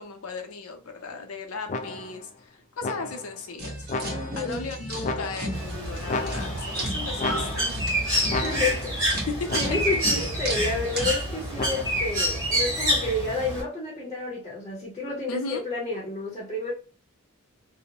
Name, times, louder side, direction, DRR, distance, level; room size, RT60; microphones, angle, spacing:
voice 1, 0.0-3.9 4.4-7.8 9.3-9.6 9.9-10.3 15.3-15.7, left 3 dB, 80° left, 0.6 m, -36 dB
sound 1, 1.7-2.3 2.8-3.4 3.9-4.5 5.0-5.7 6.1-6.8 7.2-7.9 8.3-9.0 9.5-10.1 11.6-12.2, left 3 dB, 35° left, 0.3 m, -33 dB
sound 2, 3.6-11.1, right 1 dB, 50° right, 1.0 m, -35 dB
voice 2, 4.1-4.6 8.3-9.3 9.5-16.7, left 3 dB, 15° left, 0.7 m, -30 dB
Bird, 5.5-13.6, equal, 15° right, 1.3 m, -28 dB
2.7 x 2.0 x 2.9 m
head